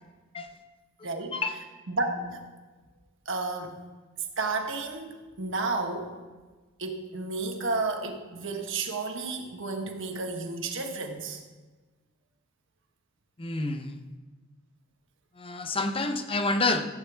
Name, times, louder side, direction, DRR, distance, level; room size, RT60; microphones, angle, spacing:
voice 1, 1.0-1.6 1.9-2.4 3.2-3.8 4.4-6.2 6.8-11.4, right 3 dB, 65° right, 3 dB, 1.3 m, -32 dB
voice 2, 13.4-14.0 15.4-16.9, left 3 dB, 25° left, 7 dB, 0.7 m, -28 dB
15.5 x 8.1 x 3.4 m, 1.3 s
head